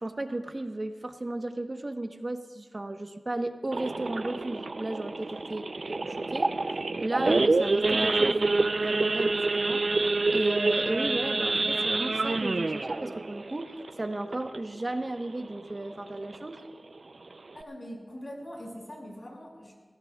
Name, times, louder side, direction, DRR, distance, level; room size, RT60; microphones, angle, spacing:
voice 1, 0.0-6.5 7.0-9.8 10.3-13.7 14.0-16.6, right 2 dB, 45° right, 6 dB, 1.1 m, -34 dB
Idling / Accelerating revving vroom / Sawing, 3.7-14.8 15.2-15.4 15.7-15.8 16.2-16.5 17.0-17.1 17.3-17.6, right 3 dB, 70° right, 0.5 m, -27 dB
voice 2, 17.5-19.7, equal, 50° left, -2 dB, 6.0 m, -42 dB
28.5 x 16.0 x 2.4 m, 1.5 s
wide cardioid pair, 55°, 0 cm